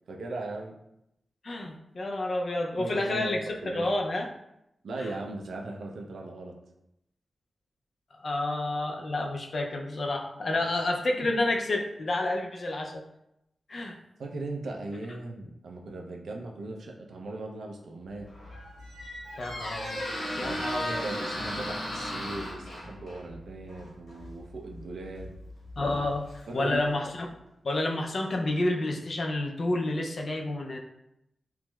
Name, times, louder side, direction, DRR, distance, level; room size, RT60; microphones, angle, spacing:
voice 1, 0.1-0.7 2.8-3.4 3.6-3.9 4.8-6.5 10.5-10.7 11.2-11.3 12.2-12.3 14.2-18.3 20.4-25.3 26.5-26.8, right 2 dB, 85° right, 1 dB, 0.4 m, -38 dB
voice 2, 1.4-3.4 3.7-4.3 5.0-5.1 8.2-13.0 13.7-14.0 19.4-20.0 20.4-21.0 25.8-26.3 26.5-27.3 27.6-30.8, left 2 dB, 45° left, 2 dB, 0.4 m, -29 dB
Squeak, 18.2-26.9, equal, 90° left, 0.8 m, -37 dB
4.5 x 2.0 x 2.2 m, 0.83 s
wide cardioid pair, 150°, 0 cm